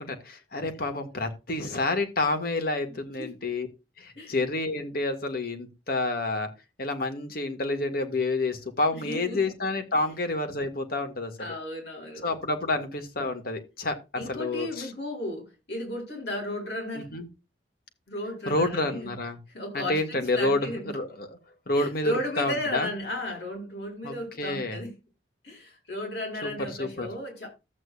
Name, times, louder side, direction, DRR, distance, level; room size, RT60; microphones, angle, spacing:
voice 1, 0.0-3.7 4.0-6.5 6.8-11.5 12.2-14.9 17.0-17.3 18.5-19.4 19.7-21.4 21.7-22.9 24.0-24.8 26.4-27.1, left 2 dB, 55° left, 1.9 m, -29 dB
voice 2, 8.9-9.5 11.4-12.3 14.2-17.2 18.1-19.1 19.5-20.9 21.7-24.9 25.4-27.5, left 1 dB, 75° left, 7.0 m, -34 dB
14.0 x 8.4 x 2.5 m
head